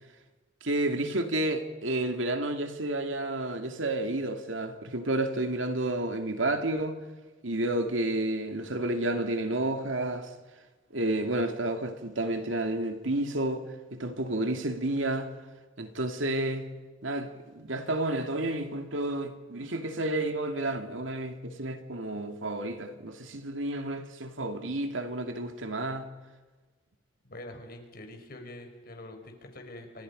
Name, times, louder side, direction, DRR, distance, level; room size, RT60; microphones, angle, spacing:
voice 1, 0.6-7.0 7.4-10.3 10.9-15.3 15.8-16.7 17.0-26.1, right 1 dB, 90° right, 2.6 m, -31 dB
voice 2, 27.2-30.0, left 1 dB, 50° left, 4.6 m, -45 dB
29.0 x 25.5 x 5.4 m
head